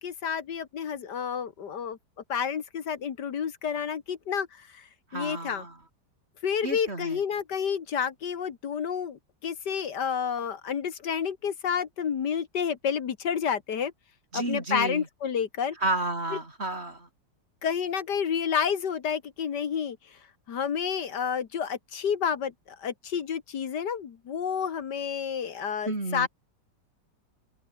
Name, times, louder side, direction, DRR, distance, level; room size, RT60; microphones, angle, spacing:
voice 1, 0.0-2.0 2.3-4.5 4.7-4.8 5.1-5.6 6.4-13.9 14.3-15.8 16.3-16.4 17.6-20.0 20.5-26.3, left 7 dB, 70° left, 2.0 m, -30 dB
voice 2, 5.1-5.8 6.6-7.2 14.3-15.1 15.8-17.1 25.9-26.3, right 2 dB, 35° right, 4.0 m, -31 dB
open air
omnidirectional pair, 1.9 m